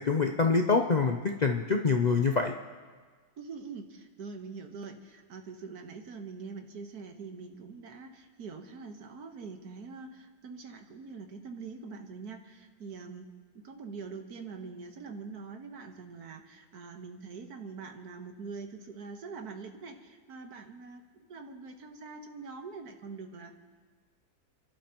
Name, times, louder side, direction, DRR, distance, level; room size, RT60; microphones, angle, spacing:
voice 1, 0.0-2.5, left 4 dB, 65° left, 3 dB, 0.4 m, -25 dB
voice 2, 3.4-13.3 13.6-23.5, right 4 dB, 85° right, 5 dB, 1.7 m, -44 dB
30.0 x 12.0 x 2.9 m, 1.5 s
omnidirectional pair, 1.6 m